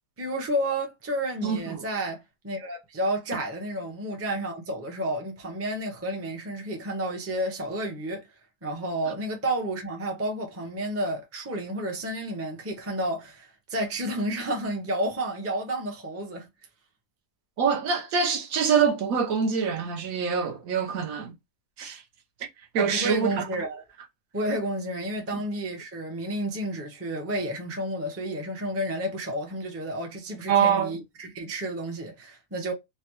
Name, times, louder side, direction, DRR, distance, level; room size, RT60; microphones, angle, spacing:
voice 1, 0.2-8.3 8.6-16.5 22.8-23.8 24.3-32.7, right 1 dB, 15° right, 0.6 m, -31 dB
voice 2, 1.4-1.9 17.6-21.3 21.8-22.0 22.7-23.5 25.3-25.4 30.5-30.9, right 6 dB, 70° right, 1.2 m, -25 dB
3.3 x 2.2 x 2.9 m
omnidirectional pair, 1.5 m